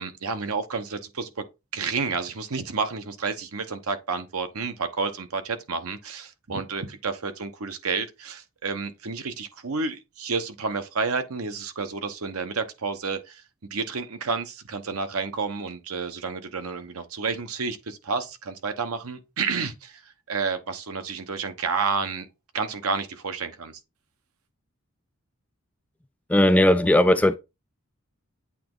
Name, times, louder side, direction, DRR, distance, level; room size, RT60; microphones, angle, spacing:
voice 1, 0.0-1.4 1.7-13.4 13.7-22.3 22.5-23.8, right 4 dB, 90° right, 0.9 m, -30 dB
voice 2, 26.3-27.4, left 1 dB, 5° left, 0.3 m, -17 dB
8.4 x 2.9 x 3.8 m
head